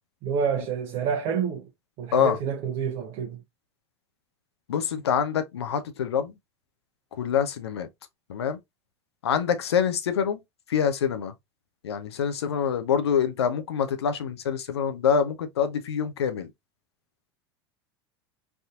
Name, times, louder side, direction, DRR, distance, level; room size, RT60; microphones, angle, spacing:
voice 1, 0.2-1.7 2.0-3.4, right 6 dB, 50° right, 0.7 m, -28 dB
voice 2, 4.7-6.3 7.2-7.9 8.3-8.6 9.2-10.4 10.7-11.3 11.8-16.5, left 7 dB, 90° left, 0.6 m, -25 dB
3.4 x 2.7 x 2.4 m
hypercardioid pair, 95°, 13 cm